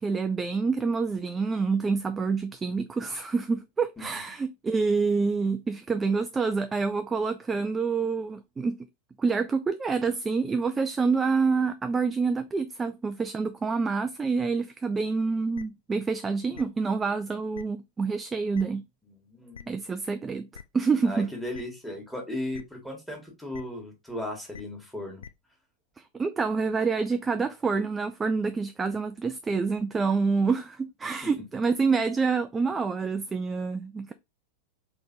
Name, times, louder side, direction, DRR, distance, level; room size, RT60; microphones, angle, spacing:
voice 1, 0.0-8.8 9.2-18.8 19.7-20.5 20.7-21.3 26.1-34.1, right 4 dB, 15° right, 0.3 m, -27 dB
sound 1, 15.5-15.6 16.5-16.6 17.5-17.6 18.5-18.6 19.5-19.6 20.5-20.6 21.5-21.6 22.5-22.6 23.5-23.6 24.5-24.6 25.2-25.3, left 7 dB, 70° left, 0.3 m, -43 dB
voice 2, 19.1-19.8 21.0-25.2 31.2-31.3, left 1 dB, ahead, 1.6 m, -36 dB
3.9 x 3.3 x 2.6 m
figure-of-eight pair, 90°, 0 cm